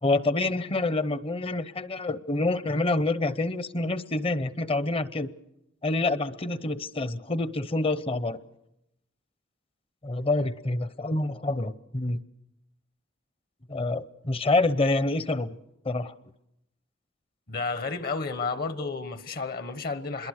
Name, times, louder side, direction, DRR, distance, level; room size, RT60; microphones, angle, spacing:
voice 1, 0.0-5.3 5.8-8.4 10.0-12.2 13.7-15.6 15.8-16.1, left 2 dB, 30° left, 0.8 m, -27 dB
voice 2, 17.5-20.3, left 4 dB, 50° left, 1.2 m, -31 dB
27.0 x 22.0 x 6.5 m
head